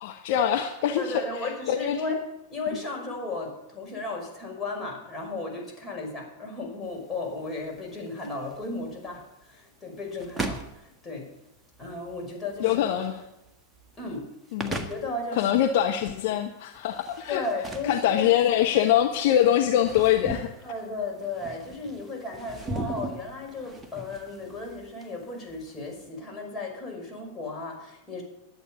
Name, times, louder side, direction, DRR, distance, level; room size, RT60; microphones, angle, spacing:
voice 1, 0.0-2.2 12.6-13.2 14.5-14.7 15.3-17.4 17.8-20.5, left 10 dB, 50° left, 5 dB, 1.0 m, -24 dB
voice 2, 0.9-2.2 2.5-11.3 11.8-12.9 14.0-14.3 14.7-15.5 16.1-16.3 17.3-18.3 20.6-28.2, left 3 dB, 15° left, 0 dB, 5.7 m, -35 dB
sound 1, 6.8-26.0, right 2 dB, 10° right, 1.6 m, -40 dB
12.0 x 8.6 x 8.7 m, 0.91 s
figure-of-eight pair, 90°, 0 cm